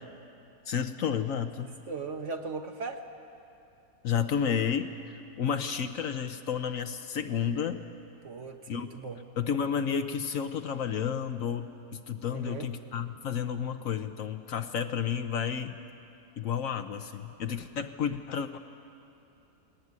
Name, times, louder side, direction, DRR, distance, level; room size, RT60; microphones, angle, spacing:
voice 1, 0.7-1.7 4.0-4.9 5.4-7.8 8.7-8.9 9.4-15.7 16.4-18.6, left 7 dB, 65° left, 8 dB, 1.1 m, -31 dB
voice 2, 1.6-3.1 8.2-9.2 12.3-12.7, right 4 dB, 50° right, 5 dB, 1.4 m, -38 dB
19.5 x 18.5 x 9.5 m, 2.7 s
omnidirectional pair, 1.7 m